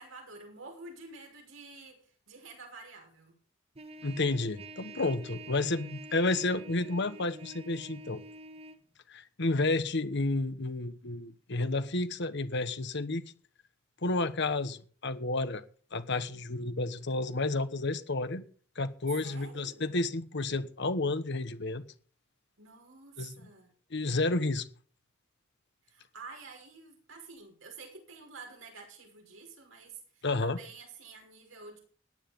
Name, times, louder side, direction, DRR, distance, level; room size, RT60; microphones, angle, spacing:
voice 1, 0.0-3.3 19.2-20.0 22.6-23.8 25.8-31.8, right 3 dB, 85° right, 5.8 m, -49 dB
Trumpet, 3.7-8.8, right 2 dB, 30° right, 1.2 m, -48 dB
voice 2, 4.0-8.2 9.1-13.3 14.0-15.6 15.9-18.4 18.8-21.8 23.2-23.3 23.9-24.7 30.2-30.6, left 2 dB, 60° left, 1.2 m, -31 dB
15.0 x 10.0 x 5.3 m
head